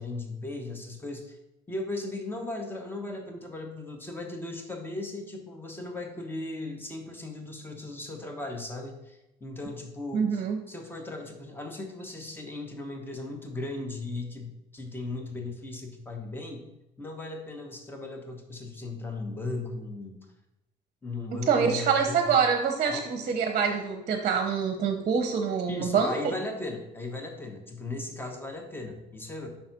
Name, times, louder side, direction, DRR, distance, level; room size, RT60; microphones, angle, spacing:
voice 1, 0.0-1.4 1.7-16.6 17.0-20.2 21.0-22.4 22.8-23.0 25.6-29.5, left 2 dB, 10° left, 3 dB, 1.1 m, -37 dB
voice 2, 10.1-10.6 21.3-26.1, right 6 dB, 45° right, 5 dB, 0.8 m, -25 dB
5.7 x 4.0 x 5.8 m, 0.92 s
cardioid pair, 110°, 17 cm